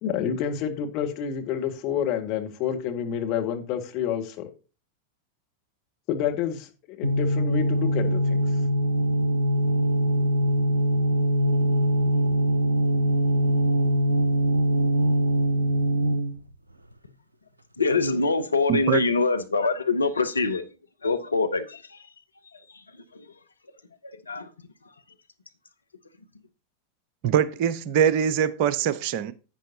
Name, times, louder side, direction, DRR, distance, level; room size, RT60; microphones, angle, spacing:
voice 1, 0.0-4.5 6.1-6.7 7.0-8.4, left 8 dB, 40° left, 1.9 m, -28 dB
sound 1, 7.0-16.4, right 1 dB, 80° right, 0.6 m, -22 dB
voice 2, 17.8-20.7 21.0-22.0 23.1-23.3 24.0-24.5, left 3 dB, 75° left, 0.8 m, -24 dB
voice 3, 18.7-19.0 27.2-29.3, right 8 dB, 45° right, 0.7 m, -23 dB
10.5 x 8.9 x 2.8 m
figure-of-eight pair, 90°, 0 cm